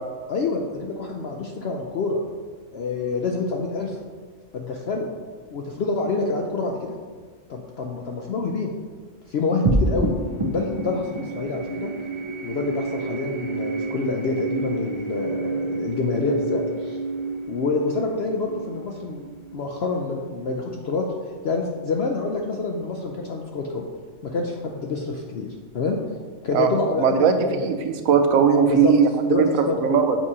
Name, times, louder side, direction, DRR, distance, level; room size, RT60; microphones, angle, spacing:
voice 1, 0.3-2.2 2.7-4.0 4.5-5.1 5.5-6.9 7.5-8.7 9.3-10.1 10.5-11.9 12.4-17.0 17.5-19.2 19.5-21.0 21.4-23.8 24.2-25.5 25.7-26.0 26.4-27.7 28.7-29.0 29.3-30.0, left 3 dB, 65° left, 1 dB, 0.7 m, -27 dB
sound 1, 9.6-20.3, right 2 dB, 50° right, 0.3 m, -29 dB
voice 2, 27.0-30.2, right 6 dB, 80° right, 6 dB, 1.0 m, -19 dB
7.2 x 4.8 x 2.8 m, 1.5 s
omnidirectional pair, 1.4 m